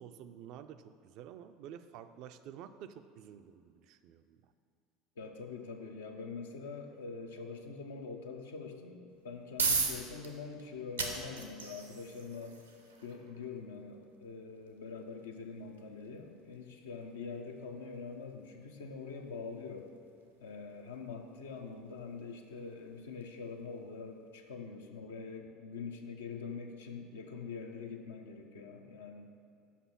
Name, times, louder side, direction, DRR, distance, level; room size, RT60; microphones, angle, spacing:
voice 1, 0.0-4.5, right 9 dB, 55° right, 10 dB, 0.4 m, -50 dB
voice 2, 5.2-12.6 13.0-19.9 20.4-29.3, left 5 dB, 75° left, 3 dB, 0.7 m, -44 dB
sound 1, 9.1-24.0, right 4 dB, 85° right, 0.7 m, -41 dB
5.8 x 5.5 x 5.9 m, 2.5 s
figure-of-eight pair, 70°, 0 cm